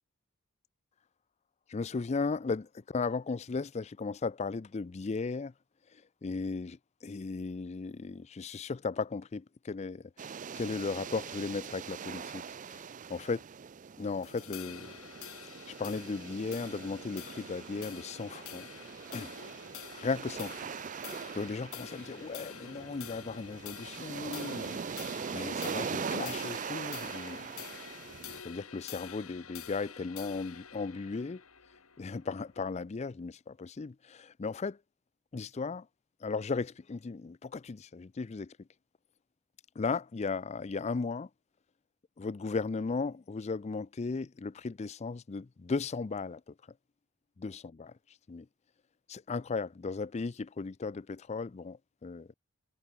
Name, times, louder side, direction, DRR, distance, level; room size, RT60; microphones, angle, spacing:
voice 1, 1.7-5.5 6.2-6.8 7.0-10.0 10.6-12.8 13.1-13.4 14.0-14.9 15.7-18.7 19.1-19.3 20.0-20.6 21.3-25.1 25.3-27.5 28.4-31.4 32.0-34.8 35.3-35.8 36.2-38.5 39.8-41.3 42.2-46.4 47.4-47.9 48.3-48.5 49.1-52.3, left 4 dB, 30° left, 0.4 m, -36 dB
sound 1, 10.2-28.4, right 6 dB, 35° right, 0.4 m, -41 dB
sound 2, 14.2-32.8, left 9 dB, 70° left, 2.4 m, -48 dB
head